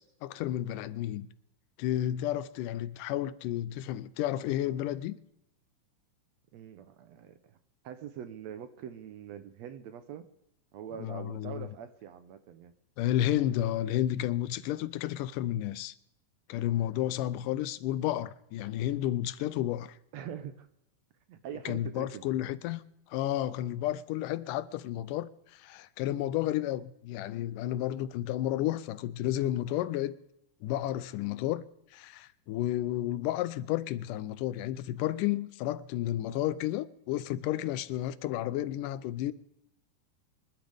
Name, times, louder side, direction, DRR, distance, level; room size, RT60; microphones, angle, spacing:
voice 1, 0.2-1.3 1.8-5.2 11.0-11.7 13.0-15.9 16.5-20.0 21.7-22.8 23.1-30.2 30.6-31.6 31.9-39.3, left 13 dB, 90° left, 2.3 m, -32 dB
voice 2, 6.5-7.6 7.8-10.3 10.7-12.7 20.1-20.7 21.3-22.4, right 9 dB, 70° right, 1.8 m, -43 dB
25.5 x 11.5 x 3.5 m
omnidirectional pair, 3.6 m